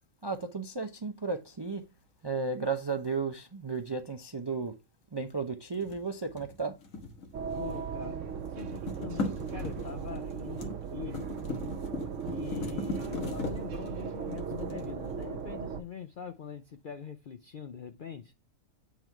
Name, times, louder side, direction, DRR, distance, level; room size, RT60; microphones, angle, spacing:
voice 1, 0.2-1.8 2.2-4.8 5.1-6.7, right 4 dB, 35° right, 0.4 m, -34 dB
sound 1, 5.7-8.0 8.3-15.6, left 3 dB, 80° left, 1.7 m, -39 dB
sound 2, 7.3-15.8, right 7 dB, 65° right, 1.0 m, -37 dB
voice 2, 7.5-11.2 12.0-18.3, left 7 dB, 60° left, 0.5 m, -43 dB
8.1 x 3.7 x 4.4 m
omnidirectional pair, 1.4 m